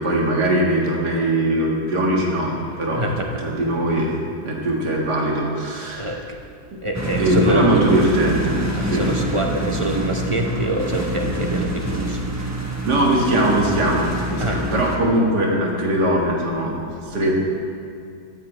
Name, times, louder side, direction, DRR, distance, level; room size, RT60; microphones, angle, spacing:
voice 1, 0.0-3.0 3.4-4.2 4.4-6.2 6.7-6.8 7.2-9.1 12.9-17.4, right 1 dB, 65° right, -2 dB, 2.4 m, -21 dB
voice 2, 2.9-3.4 5.9-6.2 6.8-7.8 8.7-12.7 14.4-14.7, right 1 dB, 35° right, 1 dB, 0.4 m, -26 dB
sound 1, 6.9-15.0, right 1 dB, 10° right, 0.9 m, -26 dB
15.5 x 13.5 x 3.3 m, 2.4 s
omnidirectional pair, 1.9 m